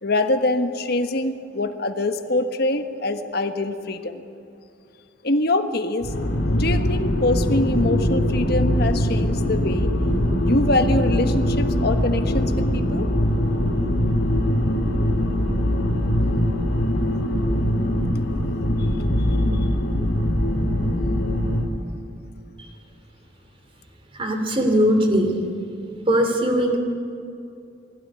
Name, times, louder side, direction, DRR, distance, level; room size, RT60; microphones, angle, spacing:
voice 1, 0.0-4.2 5.2-6.1 6.5-9.9 10.4-13.1, left 2 dB, 55° left, 7 dB, 1.4 m, -24 dB
sound 1, 6.0-21.7, left 1 dB, 75° left, 2.8 m, -22 dB
voice 2, 24.2-25.3 26.1-26.8, equal, 30° right, 5 dB, 2.8 m, -19 dB
21.5 x 16.5 x 9.7 m, 2.6 s
head